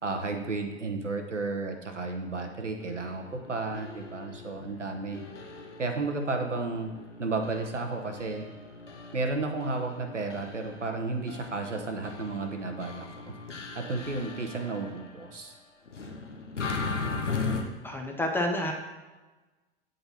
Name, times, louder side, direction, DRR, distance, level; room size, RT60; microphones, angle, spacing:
voice 1, 0.0-5.2 5.8-6.9 7.2-8.4 9.1-13.4 13.7-15.6, right 3 dB, 90° right, 4 dB, 0.9 m, -33 dB
sound 1, 2.8-15.3 15.9-17.6, left 4 dB, 85° left, 0.9 m, -39 dB
voice 2, 17.8-18.7, left 1 dB, 5° left, 2 dB, 0.5 m, -29 dB
7.8 x 3.9 x 4.1 m, 1.2 s
figure-of-eight pair, 90°, 35 cm